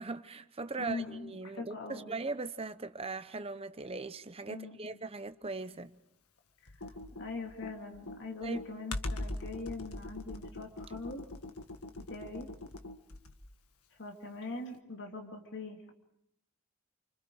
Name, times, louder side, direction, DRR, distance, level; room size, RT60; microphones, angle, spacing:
voice 1, 0.0-5.9 8.4-8.6, right 3 dB, 25° right, 0.8 m, -39 dB
voice 2, 0.8-2.1 4.5-5.0 6.6-6.7 7.2-11.2 12.1-12.5 13.9-15.9, left 3 dB, 55° left, 2.9 m, -42 dB
Computer keyboard, 6.7-13.5, left 2 dB, 80° left, 1.8 m, -42 dB
28.5 x 25.5 x 4.8 m
head